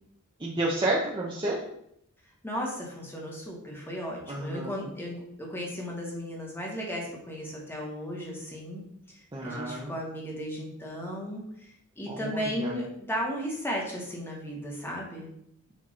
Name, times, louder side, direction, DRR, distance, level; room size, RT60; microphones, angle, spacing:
voice 1, 0.4-1.6 4.3-4.9 9.3-9.9 12.1-12.7, right 2 dB, 20° right, -4 dB, 0.8 m, -31 dB
voice 2, 2.4-8.9 9.1-11.7 12.0-15.3, equal, 10° left, -3 dB, 1.5 m, -35 dB
7.3 x 3.0 x 4.3 m, 0.73 s
head